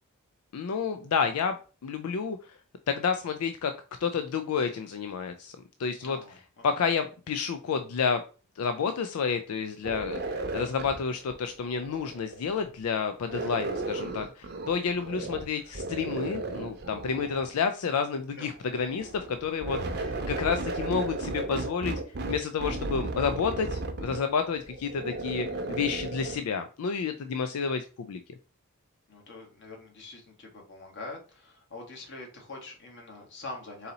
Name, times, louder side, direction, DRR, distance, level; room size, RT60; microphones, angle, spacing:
voice 1, 0.5-1.6 1.8-2.5 2.9-3.7 4.0-5.5 5.8-6.2 6.6-8.2 8.6-21.9 22.3-28.2, left 6 dB, 85° left, 8 dB, 0.4 m, -30 dB
voice 2, 6.0-6.6 18.3-18.5 27.4-27.5 29.1-33.9, left 2 dB, 55° left, 1 dB, 1.3 m, -44 dB
sound 1, 9.8-12.6 13.3-15.5 15.7-17.5 18.6-26.4, right 2 dB, 50° right, 0.7 m, -35 dB
4.0 x 2.7 x 3.9 m, 0.36 s
head